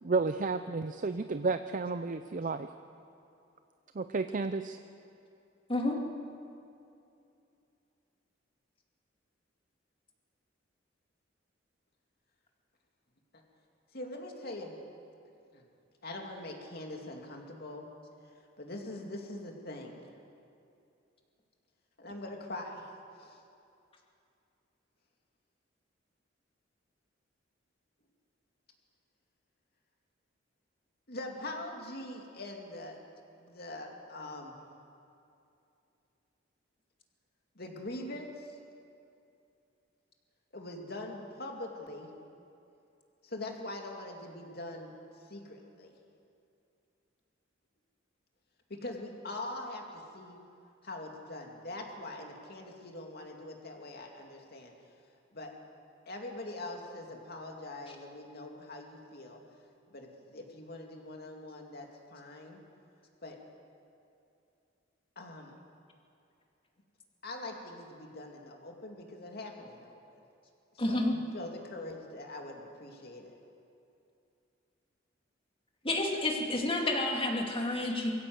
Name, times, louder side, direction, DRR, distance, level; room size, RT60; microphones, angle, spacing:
voice 1, 0.0-2.7 4.0-4.8, right 3 dB, 45° right, 9 dB, 0.5 m, -32 dB
voice 2, 13.9-14.8 15.5-15.6 16.0-17.8 18.6-20.0 22.0-22.9 23.2-23.4 31.1-33.0 33.4-34.5 37.6-38.6 40.5-42.1 43.2-44.9 45.3-45.9 48.7-50.4 50.8-54.7 55.3-55.5 56.1-59.4 59.9-62.6 63.2-63.4 65.2-65.5 67.2-70.0 70.9-73.3, left 2 dB, 55° left, 1 dB, 2.6 m, -43 dB
voice 3, 70.8-71.1 75.8-78.1, left 2 dB, 30° left, 1 dB, 2.5 m, -30 dB
23.0 x 15.5 x 7.9 m, 2.6 s
head